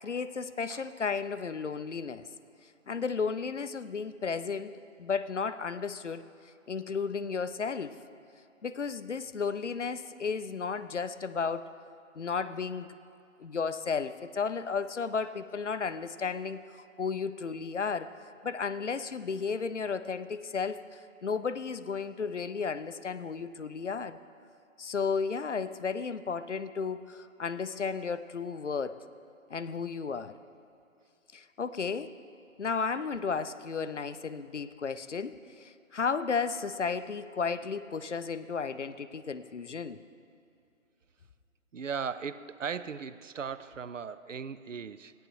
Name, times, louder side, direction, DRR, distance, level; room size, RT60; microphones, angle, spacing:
voice 1, 0.0-2.3 2.9-4.7 5.0-6.2 6.7-8.0 8.6-11.7 12.2-12.9 13.4-18.1 18.4-20.8 21.2-24.2 24.8-29.0 29.5-30.3 31.3-32.1 32.6-40.0, left 5 dB, 60° left, 13 dB, 0.5 m, -33 dB
voice 2, 41.7-45.1, right 6 dB, 65° right, 15 dB, 0.5 m, -37 dB
17.5 x 10.0 x 3.1 m, 2.6 s
figure-of-eight pair, 175°, 41 cm